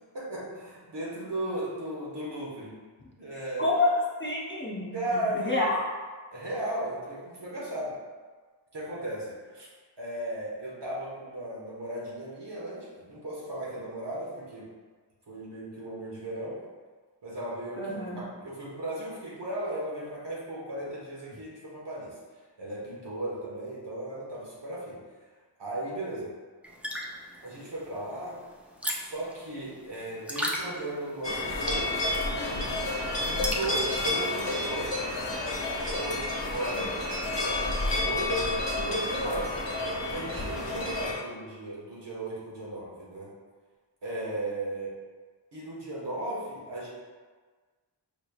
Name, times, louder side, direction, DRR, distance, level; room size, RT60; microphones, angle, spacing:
voice 1, 0.1-2.7 3.2-3.7 4.9-5.6 6.3-7.9 8.7-9.7 10.0-14.6 15.3-16.5 17.2-22.1 22.6-25.0 25.6-26.3 27.4-28.4 29.0-32.9 33.2-35.0 35.8-36.9 37.4-38.5 38.8-39.6 40.1-43.3 44.0-44.9 45.5-46.9, right 1 dB, 70° right, -6 dB, 1.3 m, -36 dB
voice 2, 3.3-5.8 17.8-18.2 36.7-36.9, left 2 dB, 25° left, -5 dB, 0.8 m, -29 dB
sound 1, 26.6-34.1, equal, 5° right, 0.5 m, -37 dB
sound 2, 31.2-41.1, left 2 dB, 75° left, 0.9 m, -30 dB
5.0 x 3.2 x 2.3 m, 1.4 s
wide cardioid pair, 65°, 43 cm